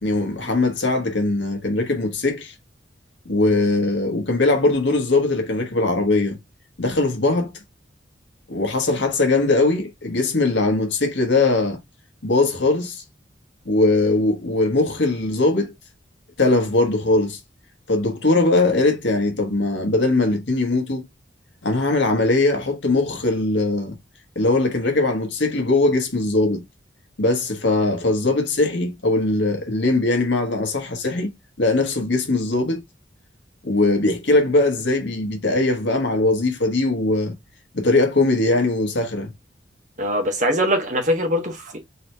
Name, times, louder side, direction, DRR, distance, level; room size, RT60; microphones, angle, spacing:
voice 1, 0.0-2.5 3.2-6.4 6.8-7.5 8.5-11.8 12.2-13.0 13.6-15.7 16.4-17.4 17.9-21.0 21.6-24.0 24.3-26.6 27.2-31.3 31.6-32.8 33.6-37.4 37.7-39.3, left 2 dB, 75° left, 1.4 m, -20 dB
voice 2, 40.0-41.8, equal, 40° right, 1.2 m, -22 dB
4.0 x 3.1 x 3.3 m
head